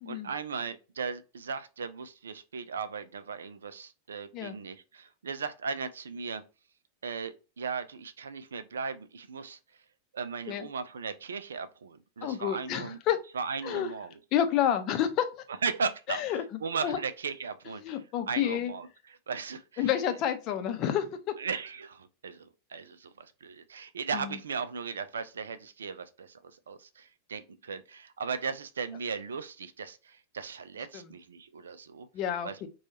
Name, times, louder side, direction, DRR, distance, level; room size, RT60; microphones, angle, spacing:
voice 1, 0.1-6.4 7.0-9.6 10.1-13.0 13.3-14.1 15.6-16.2 16.6-17.8 18.3-18.9 19.3-19.9 21.4-26.4 26.7-32.1 32.4-32.6, right 5 dB, 70° right, 0.4 m, -37 dB
voice 2, 12.2-13.2 13.6-13.9 14.3-15.3 16.1-16.4 16.8-17.0 17.8-18.7 19.8-21.4 24.1-24.4 30.9-31.1 32.1-32.7, left 10 dB, 40° left, 0.6 m, -29 dB
4.3 x 2.3 x 2.8 m
figure-of-eight pair, 90°, 0 cm